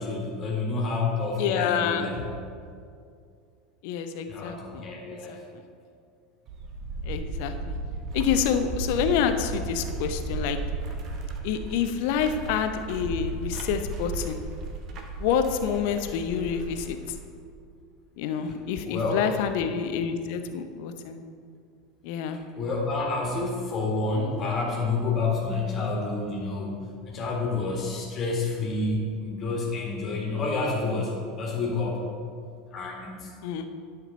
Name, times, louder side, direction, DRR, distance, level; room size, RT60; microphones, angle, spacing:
voice 1, 0.0-2.2 4.3-5.4 18.8-19.2 22.6-32.0 32.7-33.3, left 3 dB, 35° left, -2 dB, 1.8 m, -29 dB
voice 2, 1.4-2.1 3.8-4.8 5.3-5.4 7.1-7.8 8.1-10.6 11.4-14.4 15.2-17.0 18.2-21.2 22.0-22.4 33.4-33.7, left 8 dB, 55° left, 8 dB, 0.6 m, -27 dB
Wooden Chain bridge, 6.5-17.3, right 2 dB, 40° right, 1.0 m, -34 dB
11.0 x 5.9 x 3.9 m, 2.3 s
figure-of-eight pair, 75°, 0 cm